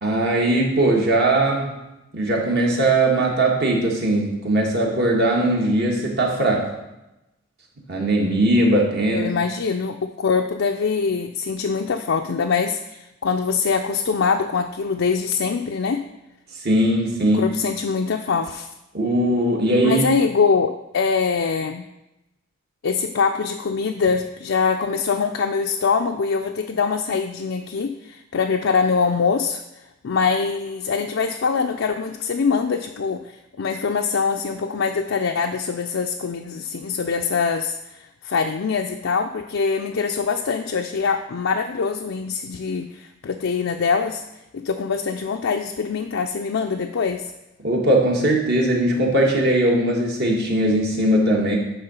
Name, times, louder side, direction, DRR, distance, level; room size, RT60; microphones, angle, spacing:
voice 1, 0.0-1.9 2.1-6.8 7.9-9.3 16.6-17.5 18.9-20.0 47.6-51.6, right 1 dB, 50° right, -1 dB, 1.6 m, -20 dB
voice 2, 9.1-16.0 17.3-18.7 19.8-21.8 22.8-29.6 30.0-44.2 44.5-47.3, left 5 dB, 65° left, 4 dB, 0.4 m, -23 dB
9.6 x 3.7 x 5.6 m, 0.93 s
head